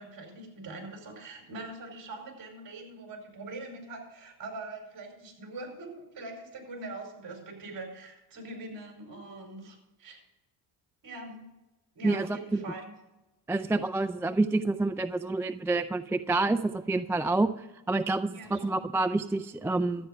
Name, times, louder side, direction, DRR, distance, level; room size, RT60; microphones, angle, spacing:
voice 1, 0.0-10.2 11.0-11.5 12.0-12.9 18.3-18.8, right 2 dB, 50° right, 2 dB, 5.3 m, -43 dB
voice 2, 12.0-12.4 13.5-20.1, right 2 dB, 5° right, 9 dB, 0.3 m, -28 dB
12.5 x 9.3 x 5.5 m, 0.97 s
cardioid pair, 95°, 43 cm